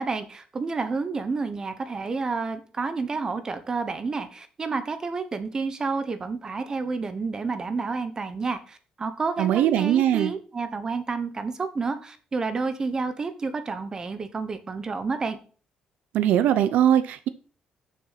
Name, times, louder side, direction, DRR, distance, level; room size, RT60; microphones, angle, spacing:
voice 1, 0.0-15.4, right 4 dB, 30° right, 10 dB, 1.1 m, -30 dB
voice 2, 9.4-10.3 16.1-17.3, right 11 dB, 90° right, 12 dB, 0.6 m, -21 dB
6.8 x 6.2 x 5.8 m, 0.40 s
cardioid pair, 135°, 3 cm